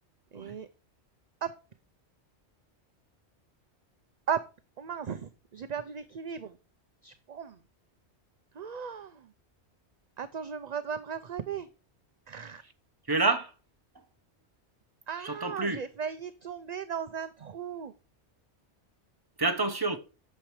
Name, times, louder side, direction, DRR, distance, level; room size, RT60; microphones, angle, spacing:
voice 1, 0.3-0.7 1.4-1.5 4.3-4.4 4.8-6.5 7.0-7.6 8.6-9.3 10.2-11.7 12.3-12.6 15.1-17.9, right 7 dB, 45° right, 0.6 m, -36 dB
voice 2, 13.1-13.5 13.9-14.0 15.2-15.9 19.4-20.0, right 3 dB, 20° right, 1.1 m, -28 dB
8.8 x 6.9 x 4.8 m
omnidirectional pair, 1.2 m